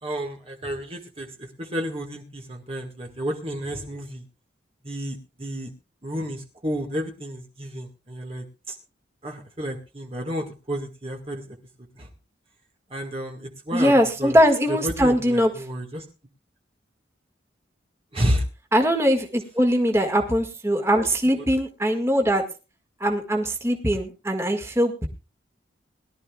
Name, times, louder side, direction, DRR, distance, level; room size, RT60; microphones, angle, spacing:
voice 1, 0.0-4.2 4.8-5.7 6.0-8.7 9.2-11.5 12.0-12.1 12.9-13.9 14.2-14.4 14.7-16.0 18.1-18.4 20.9-21.1, equal, 30° right, 1 dB, 1.6 m, -31 dB
voice 2, 13.7-15.5 18.7-22.4 23.0-25.1, equal, 15° right, 4 dB, 1.8 m, -21 dB
21.5 x 12.5 x 2.3 m, 0.31 s
head